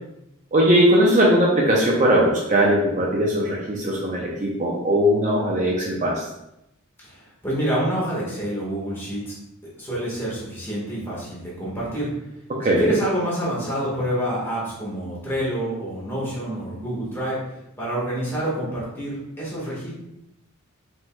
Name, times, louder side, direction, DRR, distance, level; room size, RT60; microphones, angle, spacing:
voice 1, 0.5-6.2 12.5-12.9, equal, 35° right, -2 dB, 0.6 m, -19 dB
voice 2, 7.0-9.3 9.8-12.1 12.6-17.4 17.8-19.9, right 1 dB, 10° left, -7 dB, 1.5 m, -27 dB
5.1 x 3.7 x 2.3 m, 0.85 s
head